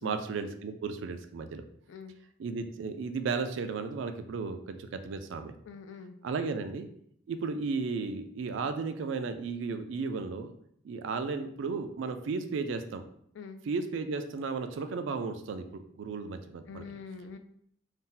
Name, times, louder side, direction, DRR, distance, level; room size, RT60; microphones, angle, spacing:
voice 1, 0.0-1.6 2.4-5.5 6.2-6.9 7.3-10.5 10.8-13.0 13.7-16.8, right 4 dB, 75° right, 8 dB, 0.3 m, -34 dB
voice 2, 5.6-6.1 13.3-13.6 16.7-17.4, left 5 dB, 70° left, 8 dB, 0.3 m, -44 dB
2.7 x 2.1 x 3.8 m, 0.68 s
head